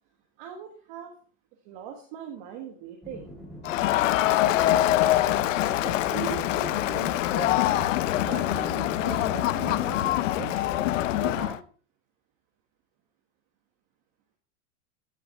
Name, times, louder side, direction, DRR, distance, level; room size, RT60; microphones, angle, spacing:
voice 1, 0.4-1.1 1.6-3.3 4.3-7.9 8.2-10.8 11.2-11.6, right 8 dB, 40° right, 2 dB, 1.6 m, -40 dB
sound 1, 3.0-11.5, equal, ahead, 3.1 m, -42 dB
Crowd, 3.6-11.6, left 14 dB, 90° left, 0.7 m, -24 dB
15.0 x 7.1 x 4.1 m, 0.41 s
supercardioid pair, 175°, 36 cm